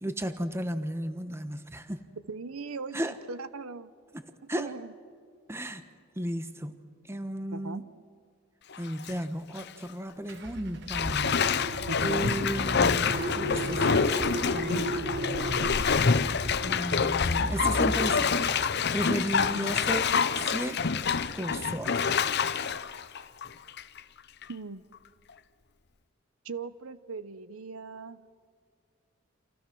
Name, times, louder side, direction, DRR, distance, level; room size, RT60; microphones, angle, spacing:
voice 1, 0.0-2.0 2.9-3.1 4.5-4.7 5.5-5.8 6.2-6.8 7.0-7.8 8.8-11.3 12.0-14.0 14.5-14.8 15.6-15.9 16.6-18.4 18.9-20.0 20.4-20.9 21.3-22.2, right 1 dB, 10° right, 9 dB, 1.2 m, -34 dB
voice 2, 2.3-3.9 4.5-4.9 7.5-7.8 11.9-12.4 19.5-19.8 24.5-24.9 26.4-28.3, right 4 dB, 85° right, 14 dB, 0.8 m, -39 dB
Bathtub (filling or washing), 8.7-9.1 9.6-9.7 10.9-24.0 24.4-24.5, left 5 dB, 50° left, 0.8 m, -27 dB
Car / Engine starting, 10.3-19.0, right 1 dB, 55° right, 1.5 m, -35 dB
29.0 x 28.0 x 6.2 m, 2.1 s
head